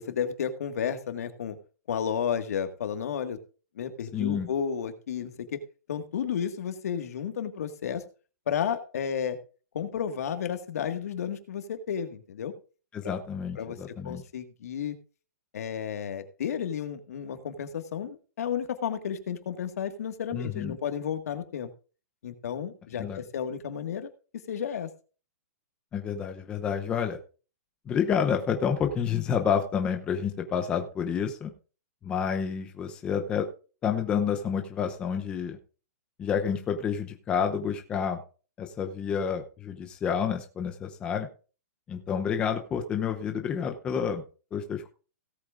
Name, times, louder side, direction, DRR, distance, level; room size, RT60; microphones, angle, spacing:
voice 1, 0.1-1.6 1.9-3.4 3.8-5.6 5.9-8.0 8.5-9.4 9.7-12.5 13.0-13.1 13.5-13.8 14.0-14.9 15.5-21.7 22.2-24.1 24.5-24.9, left 8 dB, 65° left, 8 dB, 1.8 m, -32 dB
voice 2, 4.1-4.5 12.9-14.2 20.3-20.8 23.0-23.2 25.9-27.2 27.9-31.5 32.0-33.5 33.8-35.6 36.2-38.2 38.6-41.3 41.9-44.2 44.5-44.9, left 7 dB, 10° left, 5 dB, 0.7 m, -29 dB
17.5 x 8.5 x 2.5 m, 0.35 s
hypercardioid pair, 175°, 9 cm